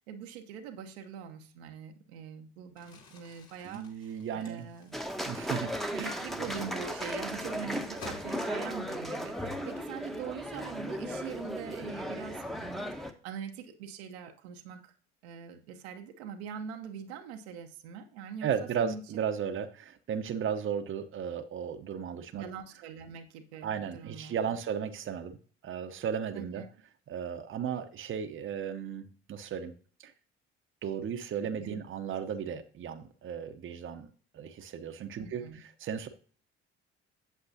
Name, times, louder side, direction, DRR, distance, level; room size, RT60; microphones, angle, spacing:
voice 1, 0.0-5.0 5.9-14.9 15.2-18.5 18.8-19.2 22.3-24.6 26.3-26.7 31.4-31.8 35.2-35.6, right 7 dB, 75° right, 5 dB, 0.9 m, -43 dB
Crumpling crinkling, 2.7-8.9, left 4 dB, 55° left, 2.6 m, -53 dB
voice 2, 3.6-4.7 5.3-6.2 18.4-22.4 23.6-25.4 25.6-26.6 27.1-29.7 30.0-30.1 30.8-36.1, right 7 dB, 40° right, 9 dB, 0.8 m, -35 dB
sound 1, 4.9-13.1, equal, ahead, 0.9 m, -36 dB
8.3 x 7.7 x 2.7 m, 0.43 s
hypercardioid pair, 55°, 32 cm